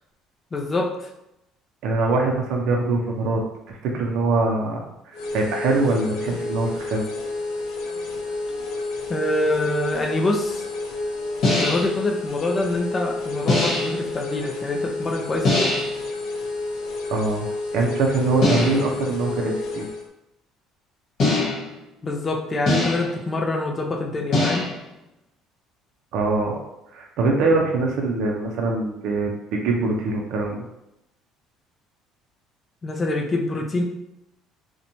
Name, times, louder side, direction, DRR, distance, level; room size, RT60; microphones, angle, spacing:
voice 1, 0.5-1.1 9.1-10.7 11.6-15.7 22.0-24.7 32.8-33.8, left 2 dB, 20° left, 1 dB, 0.4 m, -25 dB
voice 2, 1.8-7.1 17.1-17.5 17.7-19.9 26.1-26.6 26.9-30.7, right 3 dB, 60° right, 0 dB, 0.4 m, -23 dB
sound 1, 5.1-20.1, left 3 dB, 80° left, 0.5 m, -30 dB
sound 2, 11.4-12.0 13.5-14.0 15.4-16.0 18.4-19.0 21.2-21.8 22.7-23.2 24.3-24.9, left 2 dB, 45° left, 1.0 m, -22 dB
2.9 x 2.1 x 2.6 m, 0.85 s
cardioid pair, 155°, 0 cm